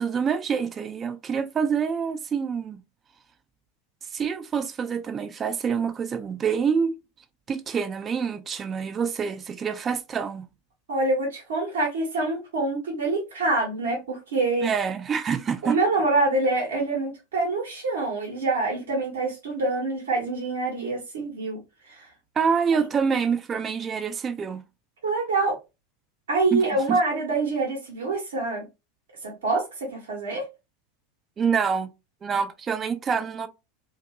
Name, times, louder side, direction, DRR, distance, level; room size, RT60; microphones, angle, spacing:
voice 1, 0.0-2.8 4.1-6.9 7.5-10.5 14.6-15.8 22.4-24.6 26.5-26.6 26.9-27.0 31.4-31.9 32.2-33.5, right 6 dB, 30° right, 0.4 m, -26 dB
voice 2, 10.9-14.7 15.6-21.6 21.9-22.1 25.0-25.6 26.3-28.7 29.2-30.5, right 3 dB, 70° right, 0.9 m, -26 dB
2.6 x 2.3 x 2.4 m
figure-of-eight pair, 85°, 0 cm